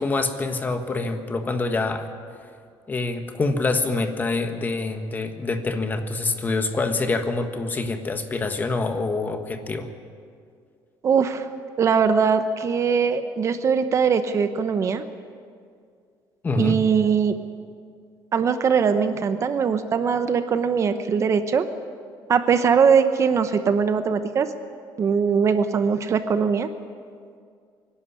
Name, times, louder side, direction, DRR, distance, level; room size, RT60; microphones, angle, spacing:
voice 1, 0.0-2.1 2.9-9.9 16.4-16.8, left 3 dB, 20° left, 6 dB, 1.4 m, -26 dB
voice 2, 11.0-11.5 11.8-15.1 16.6-17.3 18.3-21.7 22.3-24.5 25.0-26.7, right 6 dB, 35° right, 10 dB, 0.8 m, -21 dB
24.0 x 11.5 x 9.9 m, 2.2 s
cardioid pair, 155°, 9 cm